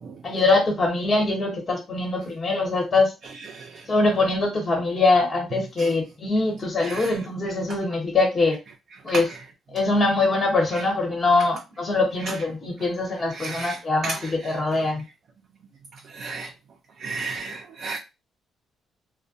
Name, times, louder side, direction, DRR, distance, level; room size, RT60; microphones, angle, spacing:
voice 1, 0.2-3.1 3.9-8.6 9.0-9.3 9.7-15.0, left 3 dB, 40° left, 1.1 m, -23 dB
voice 2, 13.3-14.3 16.1-16.5 17.0-18.0, right 4 dB, 60° right, 0.5 m, -34 dB
2.3 x 2.1 x 2.6 m
cardioid pair, 90°, 0 cm